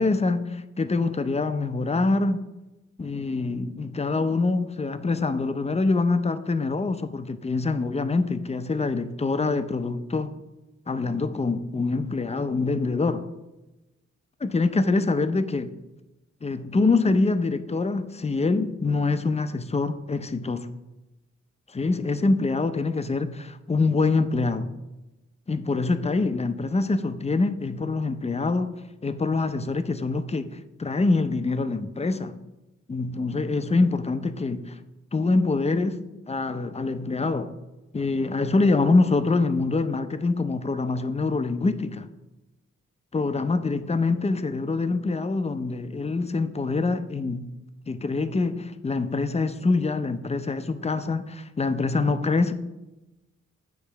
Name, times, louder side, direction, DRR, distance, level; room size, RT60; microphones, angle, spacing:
voice 1, 0.0-2.4 3.0-10.4 10.9-13.3 14.4-15.7 16.4-20.7 21.7-24.7 25.5-28.7 29.0-32.4 32.9-34.7 35.1-36.0 36.3-37.5 37.9-42.1 43.1-47.5 47.9-52.5, left 3 dB, 20° left, 0.5 m, -25 dB
8.1 x 3.1 x 5.6 m
cardioid pair, 50°, 29 cm